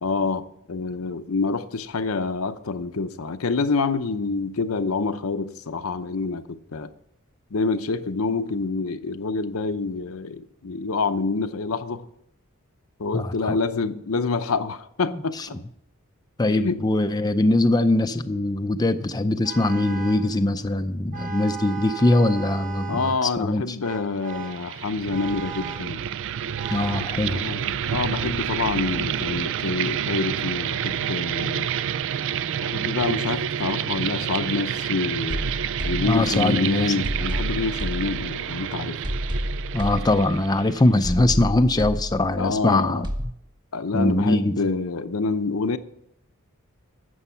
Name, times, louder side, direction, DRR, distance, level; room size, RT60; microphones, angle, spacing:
voice 1, 0.0-6.9 7.5-12.1 13.0-15.6 16.5-16.8 22.9-26.0 27.3-31.7 32.6-35.4 35.8-39.0 42.4-43.0 43.7-45.8, left 4 dB, 70° left, 0.7 m, -27 dB
voice 2, 13.1-13.6 15.1-15.5 16.4-23.8 26.7-27.4 36.0-37.0 39.7-43.1 43.9-44.6, left 2 dB, 20° left, 0.5 m, -22 dB
Vehicle horn car horn honking, 19.4-20.3 21.1-23.3 23.8-24.7 25.1-26.0 26.6-27.2, right 6 dB, 40° right, 1.4 m, -36 dB
sound 1, 24.3-41.0, right 9 dB, 60° right, 0.4 m, -29 dB
sound 2, 35.3-36.6 37.0-38.6 39.0-40.6 41.0-42.6 43.0-43.3, equal, 20° right, 1.1 m, -30 dB
12.5 x 8.0 x 5.7 m
head